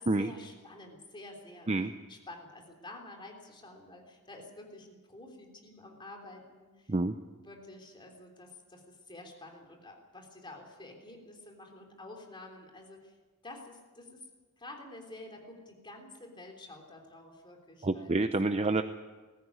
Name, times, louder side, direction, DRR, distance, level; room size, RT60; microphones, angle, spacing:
voice 1, 0.0-1.7 2.1-6.9 7.4-13.2 13.4-14.2 14.6-18.2 18.7-18.8, left 2 dB, 20° left, 2 dB, 3.3 m, -49 dB
voice 2, 17.8-18.8, right 2 dB, 30° right, 8 dB, 0.6 m, -28 dB
20.5 x 14.0 x 9.6 m, 1.3 s
head